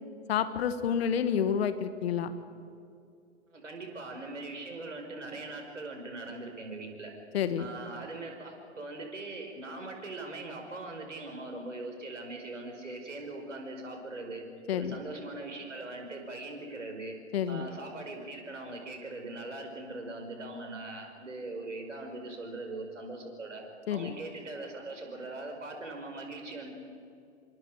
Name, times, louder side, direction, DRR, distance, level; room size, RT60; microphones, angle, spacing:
voice 1, 0.3-2.3 7.3-7.7 14.7-15.0 17.3-17.7 23.9-24.1, left 8 dB, 55° left, 11 dB, 1.8 m, -29 dB
voice 2, 3.5-7.1 7.6-14.4 14.7-17.1 17.5-23.6 23.9-26.7, right 2 dB, 85° right, 3 dB, 5.0 m, -41 dB
28.5 x 25.0 x 4.9 m, 2.4 s
figure-of-eight pair, 115°, 36 cm